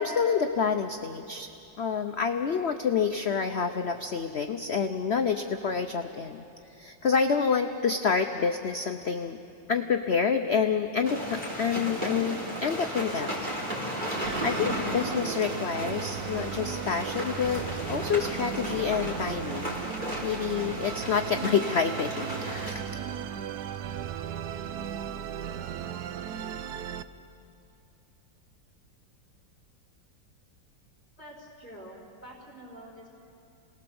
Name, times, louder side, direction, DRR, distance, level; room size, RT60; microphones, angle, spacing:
voice 1, 0.0-1.5 1.8-6.4 6.8-9.4 9.7-13.3 14.4-19.7 20.2-23.0, left 6 dB, 55° left, 6 dB, 0.7 m, -28 dB
sound 1, 11.0-22.7, equal, 25° right, 4.0 m, -34 dB
Musical instrument, 14.2-27.0, right 9 dB, 65° right, 1.1 m, -37 dB
voice 2, 31.2-33.1, equal, 5° left, -5 dB, 4.0 m, -47 dB
29.0 x 19.5 x 7.0 m, 2.7 s
omnidirectional pair, 2.0 m